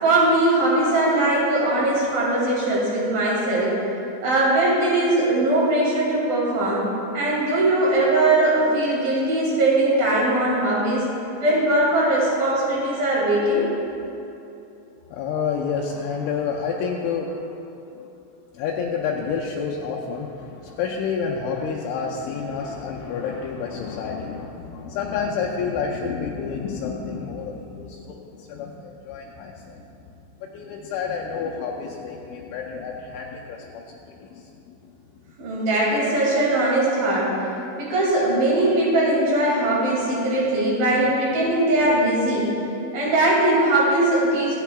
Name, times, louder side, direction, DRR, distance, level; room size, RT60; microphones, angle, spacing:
voice 1, 0.0-3.7 4.2-6.9 7.1-11.0 11.4-13.7 35.4-37.3 37.8-42.5 42.9-44.5, right 1 dB, 50° right, -5 dB, 3.7 m, -20 dB
voice 2, 15.1-17.6 17.9-18.1 18.5-29.9 30.4-35.0, left 6 dB, 80° left, -2 dB, 2.8 m, -29 dB
25.0 x 9.0 x 2.3 m, 2.8 s
omnidirectional pair, 5.8 m